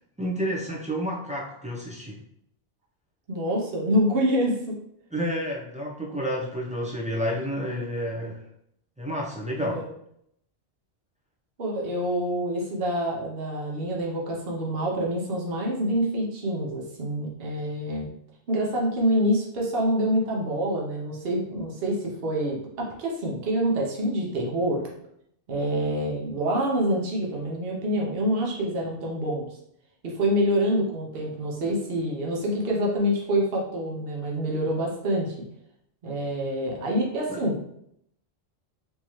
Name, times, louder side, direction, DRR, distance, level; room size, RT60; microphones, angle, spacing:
voice 1, 0.2-2.2 5.1-8.4 9.0-9.8 37.3-37.4, equal, 10° right, -4 dB, 0.5 m, -30 dB
voice 2, 3.3-4.8 9.6-9.9 11.6-18.1 18.5-24.8 25.5-29.5 30.0-35.3 36.0-37.6, equal, 60° right, -2 dB, 1.0 m, -26 dB
3.7 x 2.7 x 3.1 m, 0.72 s
omnidirectional pair, 1.1 m